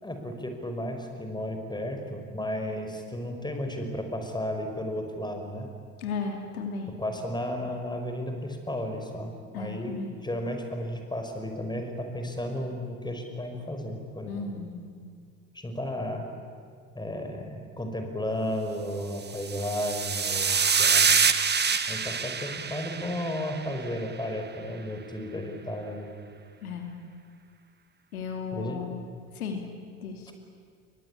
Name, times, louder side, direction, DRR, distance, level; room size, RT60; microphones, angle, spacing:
voice 1, 0.0-5.7 7.0-9.9 10.2-14.5 15.5-16.3 16.9-21.1 21.9-26.1 28.5-28.8, left 1 dB, 10° left, 5 dB, 5.5 m, -33 dB
voice 2, 6.0-6.9 9.5-10.2 14.3-14.8 26.6-26.9 28.1-28.9 29.3-29.6 30.0-30.3, left 5 dB, 75° left, 4 dB, 3.0 m, -35 dB
sound 1, 19.3-23.8, right 6 dB, 25° right, 1.7 m, -26 dB
30.0 x 22.5 x 8.7 m, 2.1 s
figure-of-eight pair, 65°, 43 cm